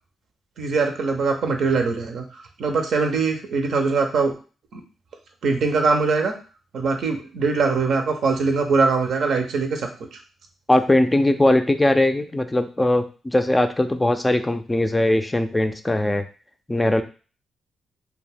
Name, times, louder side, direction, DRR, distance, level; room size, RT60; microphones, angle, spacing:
voice 1, 0.6-4.3 4.7-4.8 5.4-6.3 6.7-10.2, right 4 dB, 70° right, 4 dB, 0.6 m, -22 dB
voice 2, 10.7-16.2 16.7-17.0, left 1 dB, 20° left, 7 dB, 0.4 m, -20 dB
2.2 x 2.1 x 3.4 m, 0.36 s
supercardioid pair, 50°, 0 cm